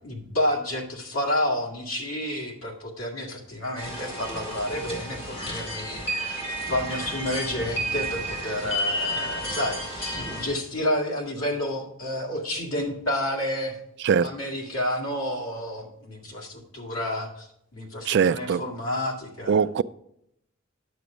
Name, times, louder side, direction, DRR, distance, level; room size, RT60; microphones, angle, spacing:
voice 1, 0.0-6.4 6.7-13.8 14.2-19.6, left 1 dB, 90° left, 2.2 m, -30 dB
sound 1, 3.8-10.5, equal, 30° left, 2.4 m, -31 dB
voice 2, 18.1-18.6 19.5-19.8, right 6 dB, 55° right, 0.3 m, -21 dB
9.6 x 7.0 x 5.0 m
head